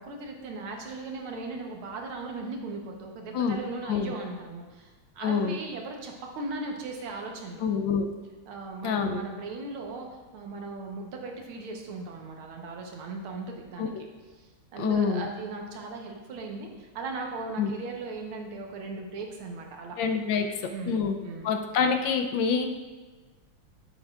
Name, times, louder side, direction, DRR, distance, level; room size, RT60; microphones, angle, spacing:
voice 1, 0.0-7.6 8.5-10.1 10.3-14.1 14.4-14.5 14.7-20.0 20.7-21.5, right 3 dB, 90° right, 2 dB, 2.0 m, -38 dB
voice 2, 5.2-5.6 7.6-8.1 8.8-9.2 13.8-14.0 14.8-15.3 17.6-17.7 20.0-21.2 21.4-22.8, left 6 dB, 75° left, 5 dB, 1.2 m, -26 dB
10.5 x 7.9 x 2.4 m, 1.3 s
omnidirectional pair, 2.3 m